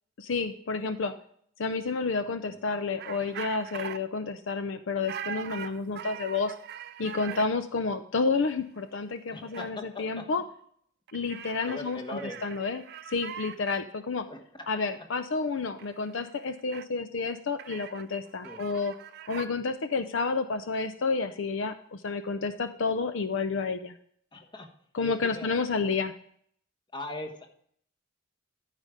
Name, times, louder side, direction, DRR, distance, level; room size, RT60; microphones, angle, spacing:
voice 1, 0.2-1.1 1.6-6.5 7.0-10.4 11.1-14.3 14.7-18.9 19.3-24.0 24.9-26.1, left 4 dB, 70° left, 10 dB, 0.5 m, -30 dB
sound 1, 3.0-4.0 5.0-7.5 8.8-8.9 9.2-9.7 11.1-13.8 15.8-16.0 16.2-16.9 17.6-19.5, right 8 dB, 55° right, 0.4 m, -41 dB
voice 2, 9.3-10.3 11.7-12.4 14.3-14.7 18.4-18.7 24.3-24.7 25.0-25.6 26.9-27.5, left 2 dB, 25° left, 3 dB, 1.3 m, -40 dB
13.5 x 4.9 x 5.1 m, 0.64 s
head